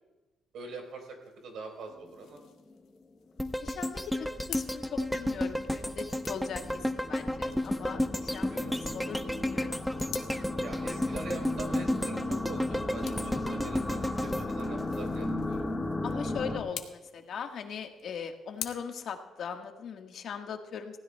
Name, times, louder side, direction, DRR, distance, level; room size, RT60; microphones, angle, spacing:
voice 1, 0.5-2.4 8.5-9.2 10.6-15.6, right 3 dB, 70° right, 2 dB, 3.9 m, -44 dB
sound 1, 0.6-18.7, left 10 dB, 85° left, 1.1 m, -49 dB
sound 2, 1.9-3.0 3.4-3.5 4.0-4.1 4.4-16.6, left 2 dB, 20° left, 1.4 m, -36 dB
sound 3, 3.4-15.6 16.0-16.1, left 1 dB, ahead, 0.7 m, -33 dB
voice 2, 3.6-6.6 6.9-9.8 16.0-21.0, left 7 dB, 65° left, 4 dB, 1.4 m, -40 dB
20.5 x 16.0 x 2.3 m, 1.1 s
cardioid pair, 90°, 0 cm